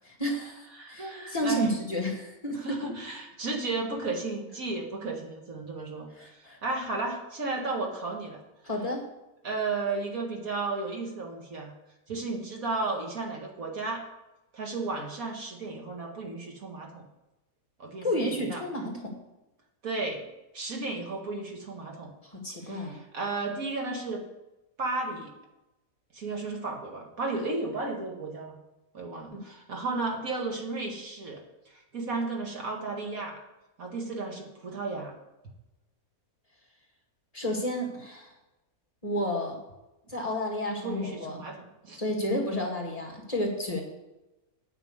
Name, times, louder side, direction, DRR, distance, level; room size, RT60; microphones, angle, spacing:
voice 1, 0.1-2.8 6.2-6.6 8.6-9.1 18.0-19.2 22.2-23.0 29.3-29.4 37.3-38.3 39.0-39.6 40.1-41.4 41.9-43.8, left 1 dB, 25° left, -1 dB, 2.2 m, -31 dB
voice 2, 0.8-1.7 2.5-6.3 6.6-8.4 9.4-11.7 12.1-14.0 14.5-17.0 17.8-18.1 18.3-18.6 19.8-20.2 20.5-22.1 22.6-24.2 24.8-25.3 26.1-28.5 28.9-31.4 31.7-33.4 33.8-35.1 40.8-42.0, right 3 dB, 70° right, 1 dB, 2.2 m, -33 dB
9.2 x 6.0 x 8.0 m, 0.97 s
omnidirectional pair, 1.5 m